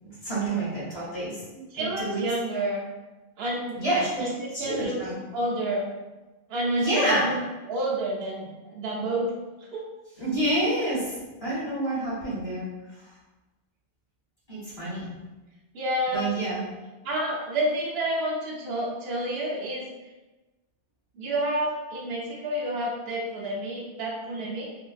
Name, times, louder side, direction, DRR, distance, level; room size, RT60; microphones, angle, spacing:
voice 1, 0.0-2.2 3.8-4.3 4.5-5.2 6.8-7.2 10.2-11.1 11.4-12.6 13.0-13.1 14.5-15.0 16.1-16.6, right 1 dB, 35° left, -10 dB, 1.2 m, -28 dB
voice 2, 1.7-2.9 3.4-3.8 4.2-5.0 5.3-5.9 6.5-7.4 7.7-9.3 9.7-9.8 15.7-16.4 17.0-19.8 21.1-24.7, right 1 dB, 70° right, -4 dB, 0.9 m, -29 dB
2.7 x 2.5 x 2.3 m, 1.1 s
omnidirectional pair, 1.1 m